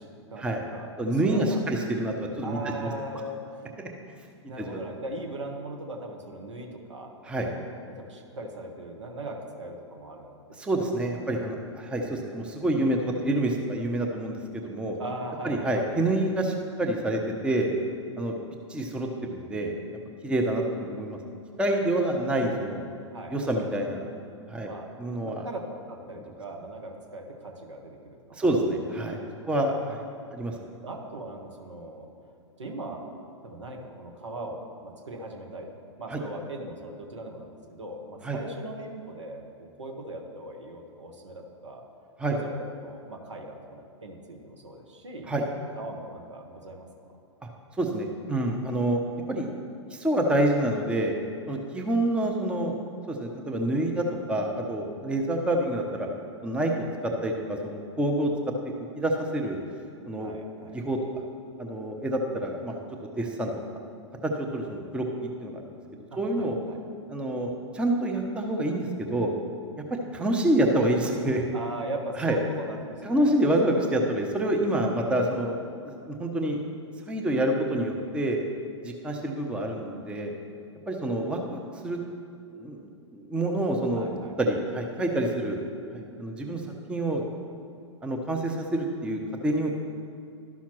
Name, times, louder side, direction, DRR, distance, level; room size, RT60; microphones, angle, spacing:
voice 1, 0.0-0.9 1.2-1.7 2.4-3.7 4.5-7.1 7.9-10.3 10.7-10.9 15.0-15.8 23.1-23.5 24.6-28.5 29.3-29.4 30.8-32.1 32.6-33.1 33.4-35.7 36.0-41.8 42.3-45.3 45.7-46.9 60.1-60.8 66.1-66.8 71.5-73.4 73.6-73.9 83.9-84.4, right 1 dB, 75° right, 2 dB, 1.2 m, -39 dB
voice 2, 1.0-2.9 4.6-4.8 7.3-7.5 10.6-15.0 15.4-17.7 18.2-18.3 18.7-19.7 20.2-21.2 21.6-22.8 23.3-24.1 24.5-24.7 25.0-25.4 28.3-29.2 29.5-30.0 30.3-30.5 36.1-36.2 38.2-38.4 42.2-42.4 45.3-45.4 47.8-49.0 49.3-49.5 49.9-51.1 51.5-52.8 53.1-56.1 56.4-58.3 58.6-59.6 60.1-60.3 60.7-61.0 61.6-63.8 64.2-65.7 66.2-66.5 67.1-69.3 70.1-71.4 72.2-72.4 73.0-75.6 75.9-76.6 77.1-78.4 78.8-80.3 80.9-82.0 82.5-84.1 84.4-85.6 85.9-86.6 86.9-87.2 88.0-89.7, right 1 dB, 5° right, 1 dB, 0.6 m, -27 dB
12.0 x 5.7 x 3.0 m, 2.5 s
figure-of-eight pair, 105°, 15 cm